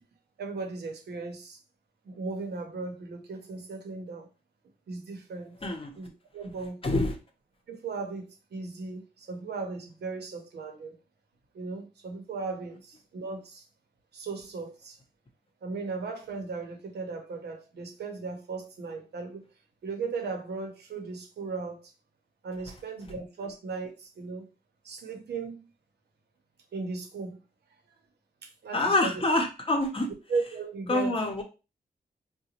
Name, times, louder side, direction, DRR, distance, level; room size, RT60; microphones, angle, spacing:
voice 1, 0.4-1.6 2.0-4.3 4.9-5.6 6.0-7.0 7.7-11.0 11.5-13.6 14.1-15.0 15.6-19.5 19.8-21.9 22.4-24.5 24.8-25.6 26.7-27.4 28.4-29.2 30.3-31.2, right 4 dB, 85° right, 0.8 m, -37 dB
voice 2, 5.6-5.9 6.8-7.1 28.7-30.1 30.9-31.4, left 2 dB, 35° left, 0.7 m, -26 dB
3.9 x 2.2 x 2.9 m
wide cardioid pair, 120°, 17 cm